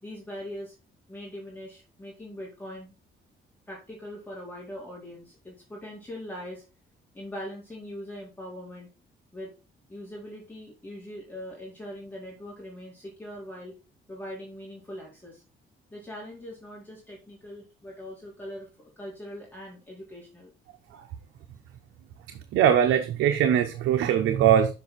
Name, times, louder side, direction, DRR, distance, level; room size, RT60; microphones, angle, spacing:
voice 1, 0.0-0.7 1.1-3.0 3.7-6.6 7.1-8.9 9.3-9.5 9.9-13.7 14.1-15.4 15.9-20.5, left 1 dB, 10° left, 3.8 m, -41 dB
voice 2, 22.3-24.7, right 9 dB, 90° right, 0.8 m, -22 dB
6.9 x 5.4 x 4.1 m
cardioid pair, 90°, 20 cm